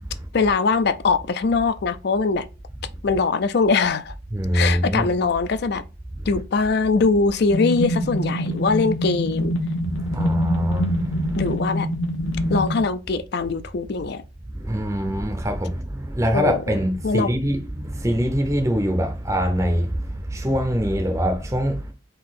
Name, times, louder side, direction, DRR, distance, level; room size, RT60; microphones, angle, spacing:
voice 1, 0.3-2.5 3.0-4.1 4.5-5.8 6.3-9.5 11.4-11.9 12.5-14.2 16.3-16.8 17.0-17.3, left 4 dB, 50° left, 0.4 m, -22 dB
voice 2, 4.3-5.1 6.2-6.4 9.9-11.5 12.2-12.5 14.6-21.9, equal, 15° right, 0.5 m, -24 dB
sound 1, 7.5-12.8, equal, 75° left, 1.0 m, -25 dB
3.9 x 2.7 x 4.1 m
head